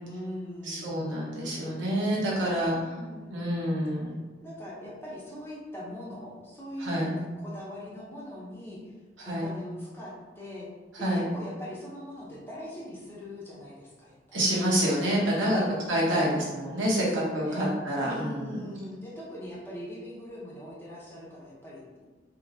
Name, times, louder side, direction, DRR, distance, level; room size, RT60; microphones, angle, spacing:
voice 1, 0.0-1.1 1.9-3.8 4.4-8.9 9.4-10.7 11.0-14.4 15.4-15.7 16.1-16.3 16.9-17.6 18.0-22.1, left 1 dB, 10° left, -6 dB, 0.7 m, -41 dB
voice 2, 0.6-2.8 3.3-4.1 6.8-7.2 9.2-9.5 10.9-11.2 14.3-15.6 15.9-18.6, equal, 90° right, -5 dB, 1.1 m, -27 dB
3.5 x 2.8 x 2.7 m, 1.3 s
head